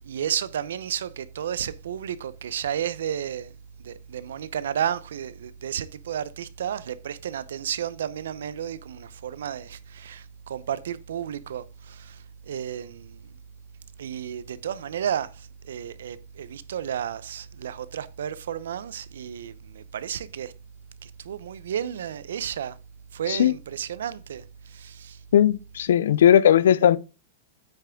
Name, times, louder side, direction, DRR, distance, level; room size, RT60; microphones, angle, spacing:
voice 1, 0.0-3.5 3.8-13.2 14.0-20.5 21.0-22.8 23.1-25.2, right 9 dB, 85° right, 0.7 m, -32 dB
voice 2, 25.3-27.0, left 10 dB, 75° left, 0.5 m, -17 dB
8.9 x 5.8 x 3.6 m
supercardioid pair, 175°, 0 cm